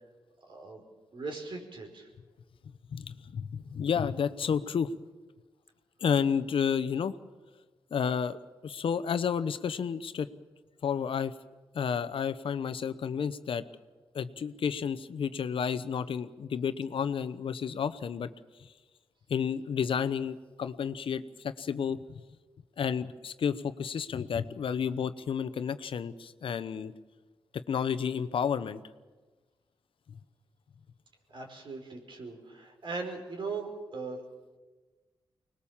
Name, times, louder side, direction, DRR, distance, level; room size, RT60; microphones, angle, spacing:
voice 1, 0.4-0.8 1.1-2.1 31.3-34.2, right 4 dB, 65° right, 2 dB, 4.9 m, -39 dB
voice 2, 2.9-4.9 6.0-7.1 7.9-10.3 10.8-11.3 11.7-13.6 14.1-18.3 18.6-18.7 19.3-22.0 22.8-26.9 27.5-28.8, left 7 dB, 75° left, 13 dB, 0.9 m, -31 dB
25.0 x 20.0 x 7.3 m, 1.3 s
cardioid pair, 75°, 9 cm